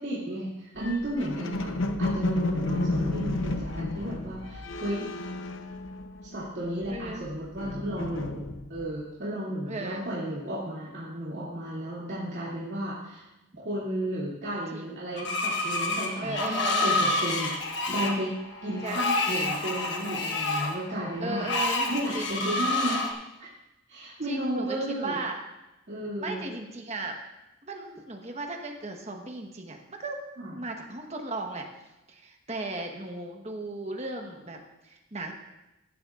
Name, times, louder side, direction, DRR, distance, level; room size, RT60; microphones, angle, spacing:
voice 1, 0.0-1.7 2.0-5.1 6.2-13.2 13.6-18.3 18.6-21.5 21.9-23.1 23.9-25.2 25.9-26.4 30.4-30.5, right 1 dB, 55° right, -9 dB, 2.6 m, -33 dB
sound 1, 0.8-6.4 6.7-8.9, left 2 dB, 70° left, 0.8 m, -32 dB
voice 2, 6.9-7.3 9.7-10.1 14.7-15.0 16.2-16.9 18.8-19.0 21.2-22.3 24.2-25.4 26.2-27.2 27.7-30.2 30.5-31.7 32.1-34.6 34.8-35.3, right 2 dB, 30° right, 3 dB, 1.2 m, -36 dB
Screech, 15.2-23.1, left 2 dB, 55° left, 1.2 m, -28 dB
15.0 x 11.0 x 2.5 m, 0.97 s
head